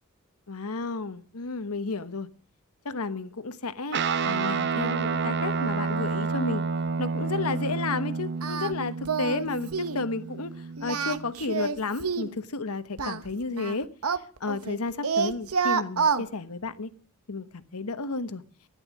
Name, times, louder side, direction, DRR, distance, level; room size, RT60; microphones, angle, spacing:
voice 1, 0.5-2.3 2.8-4.0 4.2-6.6 7.0-13.9 14.4-16.9 17.3-18.4, left 3 dB, 85° left, 12 dB, 1.2 m, -32 dB
Guitar, 3.9-11.6, right 5 dB, 50° right, 0.8 m, -30 dB
Singing, 8.4-8.7 9.1-9.5 9.7-10.0 10.8-12.4 13.0-14.8 15.0-16.2, right 5 dB, 80° right, 1.2 m, -28 dB
14.5 x 11.0 x 7.4 m, 0.43 s
head